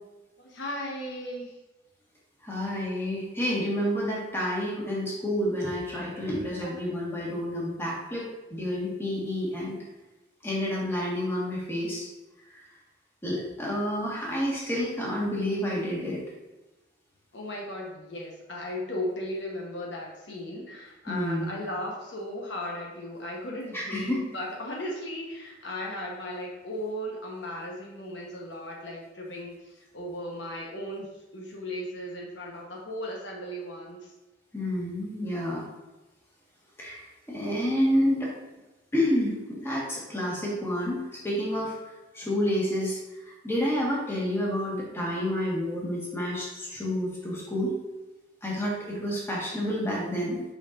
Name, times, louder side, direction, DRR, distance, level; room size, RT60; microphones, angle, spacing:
voice 1, 0.4-1.6 6.6-6.8 17.3-34.1, left 1 dB, 60° left, -2 dB, 1.1 m, -36 dB
voice 2, 2.4-8.2 8.5-9.8 10.4-12.1 13.2-16.2 21.1-21.5 23.7-24.2 34.5-35.6 36.8-38.3 38.9-41.8 42.1-43.0 43.2-47.7 48.4-50.4, equal, 10° left, -5 dB, 1.6 m, -29 dB
7.1 x 5.4 x 2.6 m, 1.1 s
head